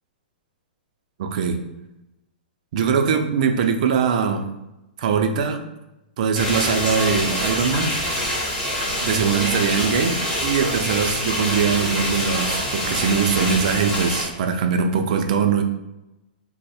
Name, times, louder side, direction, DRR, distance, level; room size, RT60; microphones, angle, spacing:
voice 1, 1.2-1.6 2.7-4.5 5.0-5.6 6.2-8.0 8.9-15.6, right 6 dB, 50° right, 6 dB, 0.4 m, -21 dB
sound 1, 6.3-14.2, equal, 15° left, 1.3 m, -25 dB
3.1 x 2.0 x 4.2 m, 0.94 s
hypercardioid pair, 160°, 5 cm